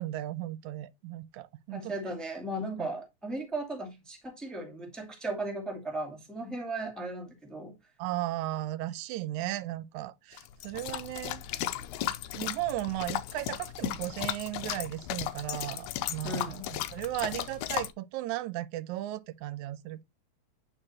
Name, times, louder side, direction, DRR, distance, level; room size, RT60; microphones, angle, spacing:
voice 1, 0.0-1.9 2.8-2.9 8.0-11.4 12.3-20.0, right 15 dB, 90° right, 2.0 m, -35 dB
voice 2, 1.7-7.7 16.2-16.7, right 2 dB, ahead, 1.6 m, -36 dB
sound 1, 10.4-17.9, left 13 dB, 90° left, 2.0 m, -35 dB
8.9 x 4.7 x 2.9 m
omnidirectional pair, 3.3 m